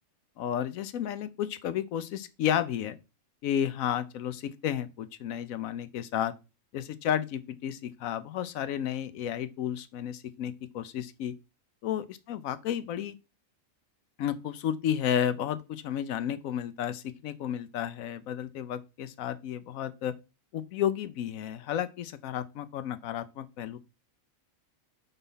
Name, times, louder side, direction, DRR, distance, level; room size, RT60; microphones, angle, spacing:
voice 1, 0.4-3.0 3.4-6.3 6.7-11.3 11.8-13.1 14.2-20.1 20.5-23.8, left 10 dB, 85° left, 1.0 m, -32 dB
5.6 x 4.0 x 5.5 m
omnidirectional pair, 1.4 m